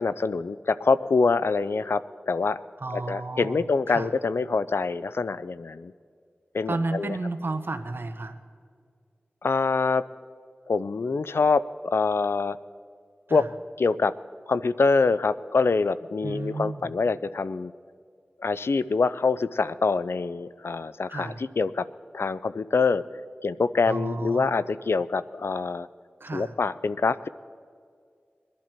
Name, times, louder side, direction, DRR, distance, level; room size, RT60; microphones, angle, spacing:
voice 1, 0.0-2.6 2.9-5.9 6.5-7.2 9.4-10.0 10.7-12.6 13.3-13.4 13.8-14.1 14.5-17.7 18.4-21.9 22.1-23.0 23.4-25.9 26.3-27.3, left 4 dB, 75° left, 16 dB, 0.4 m, -25 dB
voice 2, 2.8-4.1 6.7-8.4 13.3-13.5 16.2-16.8 21.1-21.4 23.8-24.6 26.2-26.5, right 2 dB, 65° right, 8 dB, 1.0 m, -32 dB
22.5 x 11.5 x 4.5 m, 2.2 s
wide cardioid pair, 55°, 4 cm